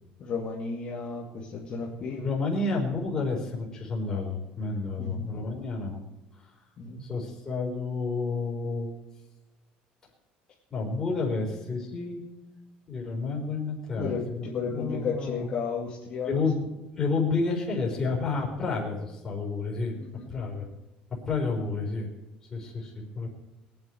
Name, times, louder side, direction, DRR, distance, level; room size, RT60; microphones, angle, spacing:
voice 1, 0.2-2.3 5.0-5.3 6.8-7.1 14.0-16.5 20.0-20.3, left 5 dB, 35° left, -4 dB, 2.3 m, -33 dB
voice 2, 2.1-6.0 6.3-6.5 7.0-9.0 10.7-12.2 12.9-15.5 16.2-16.7 16.9-19.9 20.3-20.7 21.2-22.1 22.5-23.4, left 3 dB, 15° left, -2 dB, 4.5 m, -30 dB
23.0 x 9.6 x 4.8 m, 1.0 s
cardioid pair, 170°, 3 cm